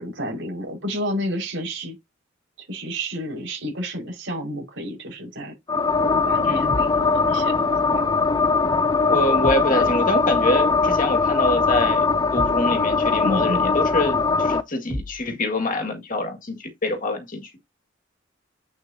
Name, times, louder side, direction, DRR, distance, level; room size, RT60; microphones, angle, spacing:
voice 1, 0.0-1.9 2.7-5.5 6.0-8.2 13.2-13.7, equal, 75° right, 4.9 m, -30 dB
sound 1, 5.7-14.6, left 4 dB, 20° left, 0.4 m, -21 dB
sound 2, 6.7-7.1 9.4-9.8 12.3-12.7 14.9-15.3, left 1 dB, 10° right, 3.4 m, -31 dB
voice 2, 9.1-17.5, left 2 dB, 45° left, 1.8 m, -25 dB
7.6 x 6.1 x 2.7 m
head